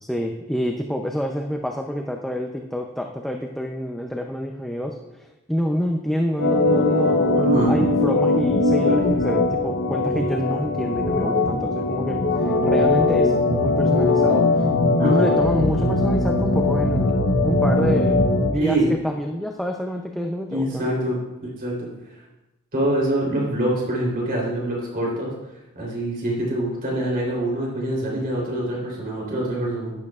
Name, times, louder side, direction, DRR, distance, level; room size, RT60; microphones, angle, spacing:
voice 1, 0.0-14.7 15.0-17.1 17.4-18.2 18.5-18.8 19.0-20.8, equal, ahead, 2 dB, 0.5 m, -27 dB
Organ, 6.4-18.5, left 2 dB, 60° left, 0.9 m, -20 dB
voice 2, 7.3-7.8 15.0-15.4 18.5-18.9 20.5-21.2 21.6-21.9 22.7-25.3 25.7-29.9, right 1 dB, 45° right, -4 dB, 3.4 m, -25 dB
12.0 x 11.0 x 2.4 m, 1.0 s
head